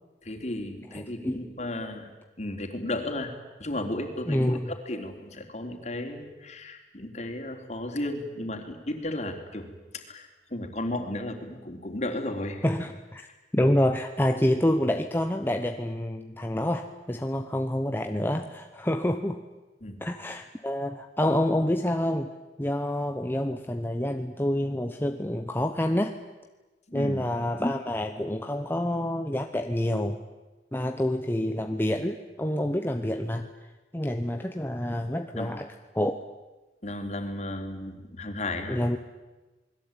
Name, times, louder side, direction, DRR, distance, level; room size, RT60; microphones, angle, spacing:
voice 1, 0.2-2.1 2.4-3.3 3.6-12.6 19.8-20.0 26.9-27.2 35.3-35.5 36.8-38.8, left 1 dB, 40° left, 4 dB, 3.6 m, -34 dB
voice 2, 0.9-1.4 4.3-4.7 12.6-13.3 13.5-19.4 20.0-22.3 22.6-26.1 26.9-30.2 30.7-33.5 33.9-35.7 35.9-36.2 38.7-39.0, left 1 dB, 10° left, 5 dB, 1.0 m, -27 dB
28.5 x 21.0 x 9.0 m, 1.2 s
head